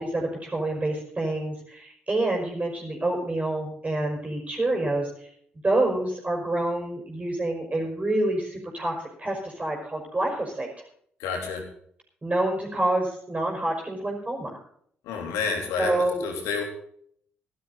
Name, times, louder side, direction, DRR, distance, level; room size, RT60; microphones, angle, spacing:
voice 1, 0.0-5.3 5.6-10.7 12.2-14.6 15.8-16.3, right 2 dB, 25° right, -1 dB, 4.9 m, -27 dB
voice 2, 11.2-11.6 15.0-15.9 16.2-16.6, left 5 dB, 65° left, 3 dB, 3.4 m, -29 dB
16.0 x 12.0 x 3.9 m, 0.64 s
figure-of-eight pair, 45°, 5 cm